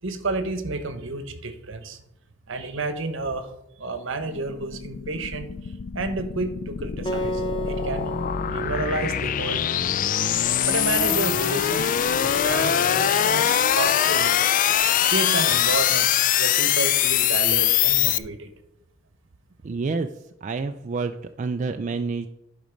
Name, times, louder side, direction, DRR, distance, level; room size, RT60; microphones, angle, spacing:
voice 1, 0.0-2.0 2.5-3.5 3.8-5.5 5.9-8.1 8.5-9.9 10.7-14.4 15.1-18.5, right 3 dB, 65° right, 9 dB, 1.1 m, -30 dB
sound 1, 4.3-18.2, left 10 dB, 40° left, 0.3 m, -23 dB
Acoustic guitar, 7.1-10.3, equal, 25° left, 0.9 m, -33 dB
voice 2, 19.6-20.1 20.4-22.3, right 4 dB, 40° right, 7 dB, 0.4 m, -28 dB
11.5 x 5.2 x 5.1 m, 0.79 s
head